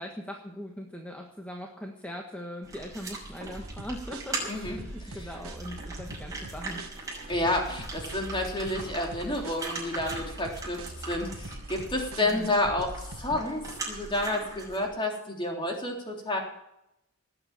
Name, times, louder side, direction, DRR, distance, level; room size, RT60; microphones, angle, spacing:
voice 1, 0.0-6.8 12.2-12.6, equal, 5° left, 1 dB, 1.4 m, -40 dB
sound 1, 2.6-14.9, right 3 dB, 15° right, 5.7 m, -40 dB
sound 2, 3.5-13.4, right 2 dB, 70° right, 1.5 m, -42 dB
voice 2, 4.5-4.8 5.1-5.3 7.3-16.4, left 1 dB, 20° left, 1 dB, 3.5 m, -30 dB
19.0 x 8.2 x 8.8 m, 0.83 s
head